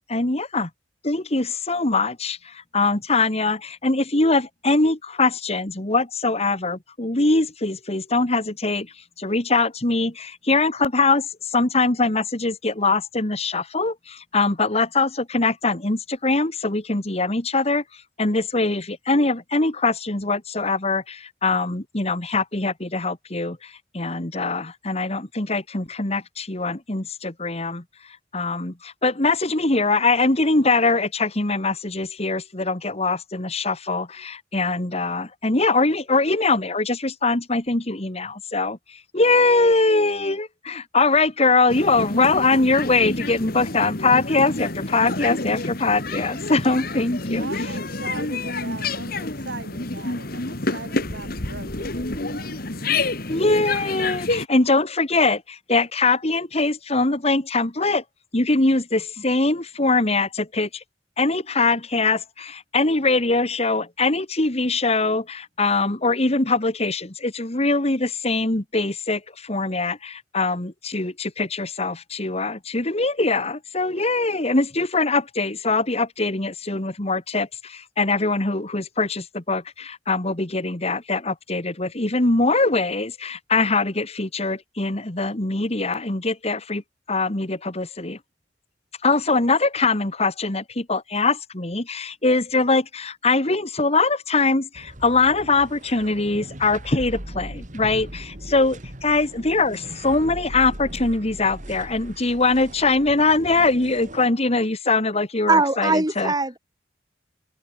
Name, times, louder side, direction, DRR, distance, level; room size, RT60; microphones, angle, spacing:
voice 1, 0.1-0.7 1.0-17.8 18.2-27.8 28.3-47.5 53.3-58.0 58.3-60.8 61.2-86.8 87.1-88.2 89.0-106.3, left 3 dB, 35° left, 1.8 m, -22 dB
sound 1, 41.7-54.5, left 3 dB, 55° left, 2.7 m, -28 dB
voice 2, 47.4-52.7, right 3 dB, 70° right, 7.6 m, -39 dB
sound 2, 94.7-104.3, right 1 dB, 40° right, 3.1 m, -39 dB
voice 3, 105.5-106.6, right 3 dB, 20° right, 2.3 m, -20 dB
open air
head